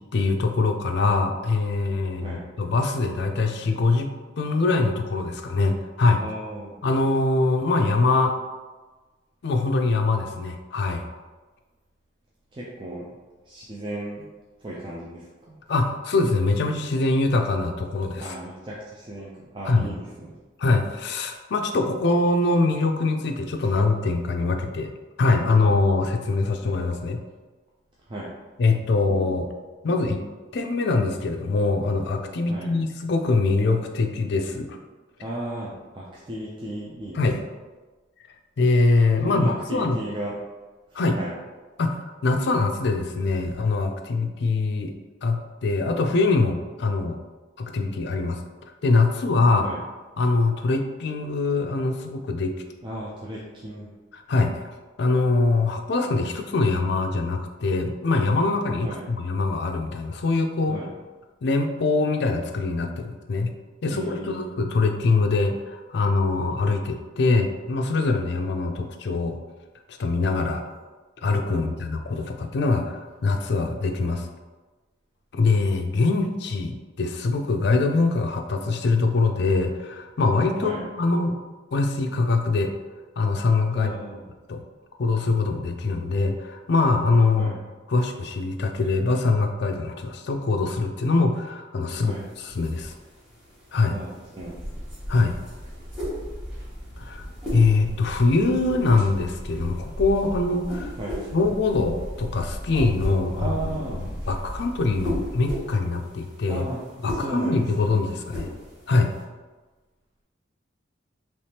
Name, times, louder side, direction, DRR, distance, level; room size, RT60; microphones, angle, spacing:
voice 1, 0.1-4.1 4.4-6.2 6.8-8.4 9.4-11.1 15.7-18.4 19.7-19.9 20.6-24.9 25.2-27.2 28.6-29.5 29.8-30.2 30.5-34.8 37.1-37.4 38.6-40.0 40.9-41.2 41.8-44.9 45.2-47.2 47.6-48.4 48.8-49.7 50.2-52.6 54.1-54.6 55.0-60.8 61.4-63.5 63.8-69.4 69.9-70.6 71.2-74.3 75.3-81.4 81.7-82.7 83.2-83.9 84.5-84.6 85.0-87.5 87.9-92.9 93.7-93.9 95.1-95.4 97.0-97.2 97.5-100.9 101.3-103.5 103.9-106.6 107.0-108.5 108.9-109.1, left 3 dB, 60° left, 5 dB, 0.4 m, -23 dB
voice 2, 2.1-2.5 6.2-6.8 12.5-13.1 13.5-14.3 14.6-15.6 18.2-20.3 28.1-28.3 32.5-32.7 35.2-37.2 39.2-40.3 40.9-41.3 49.6-49.8 52.8-53.9 58.8-59.0 60.7-60.9 63.9-64.5 71.5-71.9 80.6-80.8 83.7-84.2 87.3-87.6 92.0-92.3 93.9-94.8 101.0-101.2 103.3-104.0 106.4-106.8 107.1-107.9, right 1 dB, 25° right, -5 dB, 0.4 m, -35 dB
sound 1, 92.0-109.2, equal, 5° right, 1.3 m, -38 dB
sound 2, 94.4-105.4, equal, 60° right, 0.8 m, -37 dB
3.4 x 3.1 x 2.8 m, 1.3 s
head